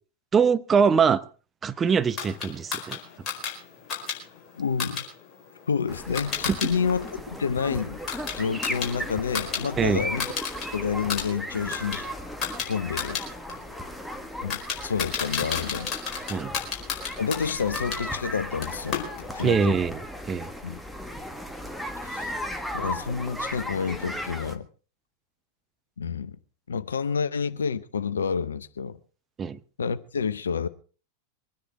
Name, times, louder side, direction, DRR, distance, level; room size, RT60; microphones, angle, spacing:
voice 1, 0.3-1.2 1.6-3.0 9.8-10.0 16.3-16.5 19.4-20.0 20.3-20.5 29.4-29.6, right 6 dB, 20° right, 0.8 m, -22 dB
sound 1, 2.2-6.7 7.0-9.6 9.9-10.7 11.0-18.0 18.6-19.5, left 7 dB, 30° left, 4.7 m, -33 dB
voice 2, 4.6-5.1 5.7-8.0 8.4-10.3 10.7-12.1 12.7-13.2 14.4-15.9 17.2-19.0 19.3-19.8 20.6-20.8 22.0-22.3 22.7-24.7 26.0-26.4 26.7-29.0 29.8-30.7, left 6 dB, 70° left, 0.8 m, -29 dB
sound 2, 5.9-24.6, equal, ahead, 1.7 m, -36 dB
23.0 x 10.0 x 4.7 m
figure-of-eight pair, 90°, 0 cm